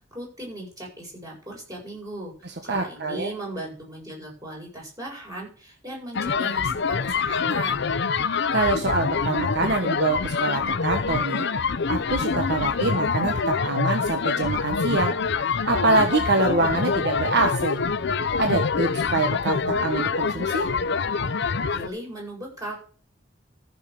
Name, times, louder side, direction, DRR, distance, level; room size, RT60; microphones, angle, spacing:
voice 1, 0.1-7.9 21.7-22.7, right 1 dB, 20° right, -2 dB, 7.6 m, -37 dB
voice 2, 2.7-3.3 8.5-11.5 11.9-17.8 18.4-20.7, right 3 dB, 60° right, 4 dB, 1.4 m, -25 dB
sound 1, 6.1-21.9, left 5 dB, 65° left, 0.7 m, -25 dB
14.0 x 6.6 x 6.8 m, 0.41 s
head